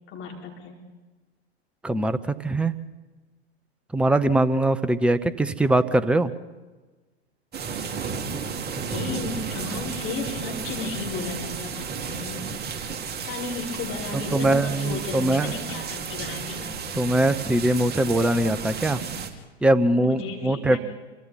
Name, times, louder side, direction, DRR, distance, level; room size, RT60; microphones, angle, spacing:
voice 1, 0.1-0.8 8.8-12.5 13.1-16.7 20.0-20.8, left 4 dB, 40° left, -1 dB, 5.3 m, -34 dB
voice 2, 1.8-2.7 3.9-6.3 14.3-15.5 17.0-19.0 19.6-20.8, right 1 dB, 5° right, 13 dB, 0.8 m, -22 dB
sound 1, 7.5-19.3, right 6 dB, 30° right, 2.8 m, -33 dB
28.0 x 24.5 x 4.2 m, 1.3 s
hypercardioid pair, 90°, 33 cm